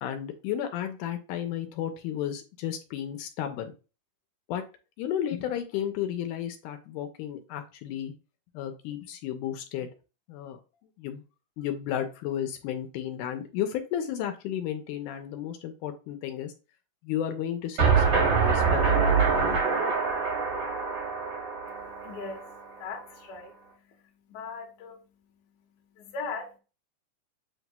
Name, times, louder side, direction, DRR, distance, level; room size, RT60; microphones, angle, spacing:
voice 1, 0.0-3.7 4.5-4.6 5.0-8.1 8.5-9.9 10.3-10.6 11.0-11.2 11.6-16.5 17.0-18.9, left 10 dB, 80° left, 2.1 m, -33 dB
sound 1, 17.8-22.7, right 5 dB, 40° right, 2.4 m, -25 dB
voice 2, 21.7-26.6, left 4 dB, 60° left, 1.6 m, -41 dB
7.8 x 3.0 x 2.2 m
omnidirectional pair, 3.7 m